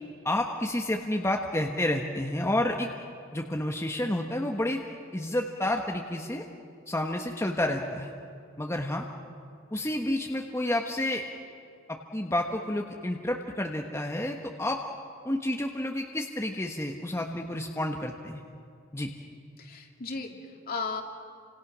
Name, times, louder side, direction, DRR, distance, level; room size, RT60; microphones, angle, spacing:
voice 1, 0.2-2.9 3.3-4.8 5.1-6.4 6.9-8.1 8.6-9.1 9.7-11.2 11.9-14.8 15.2-18.4 18.9-19.1, left 1 dB, 15° left, 2 dB, 1.2 m, -30 dB
voice 2, 19.6-21.0, left 4 dB, 50° left, 2 dB, 2.8 m, -35 dB
30.0 x 26.0 x 6.3 m, 2.4 s
head